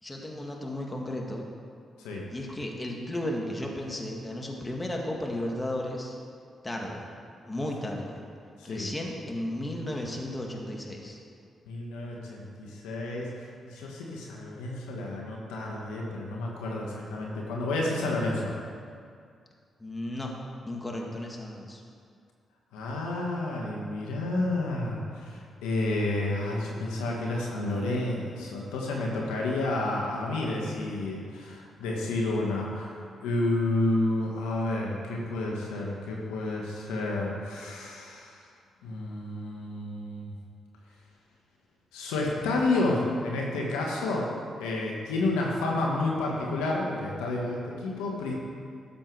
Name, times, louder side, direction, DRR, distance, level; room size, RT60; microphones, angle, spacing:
voice 1, 0.0-1.5 2.3-6.2 6.6-7.1 7.5-8.2 8.6-11.2 19.8-20.3 20.7-21.8, left 1 dB, 20° left, 0 dB, 2.2 m, -34 dB
voice 2, 11.7-18.5 22.7-33.0 33.2-38.3 38.8-40.3 41.9-44.3 44.6-48.3, left 2 dB, 85° left, -2 dB, 1.5 m, -30 dB
12.5 x 7.7 x 4.8 m, 2.3 s
hypercardioid pair, 45°, 0 cm